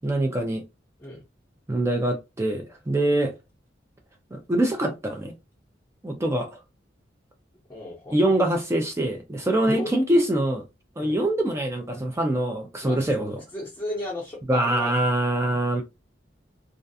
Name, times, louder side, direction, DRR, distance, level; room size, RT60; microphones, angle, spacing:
voice 1, 0.0-0.6 1.7-3.3 4.3-5.3 6.0-6.6 8.1-10.6 11.0-13.4 14.5-15.8, right 1 dB, 15° right, 0.4 m, -24 dB
voice 2, 7.7-8.2 9.6-9.9 11.0-11.2 12.8-13.0 13.5-14.9, left 1 dB, 10° left, 0.7 m, -34 dB
2.4 x 2.2 x 2.6 m
head